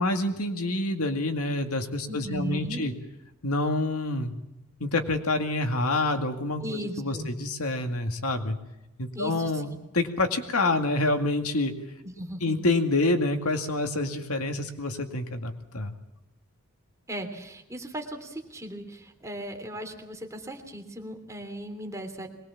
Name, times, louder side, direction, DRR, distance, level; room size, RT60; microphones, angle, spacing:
voice 1, 0.0-2.9 3.4-4.3 4.8-8.6 9.0-9.7 9.9-11.7 12.4-15.9, left 2 dB, 75° left, 6 dB, 2.2 m, -27 dB
voice 2, 2.1-2.8 6.6-7.3 9.1-9.5 12.0-12.5 17.1-22.3, equal, 15° right, 3 dB, 3.1 m, -37 dB
23.0 x 20.5 x 7.3 m, 0.91 s
head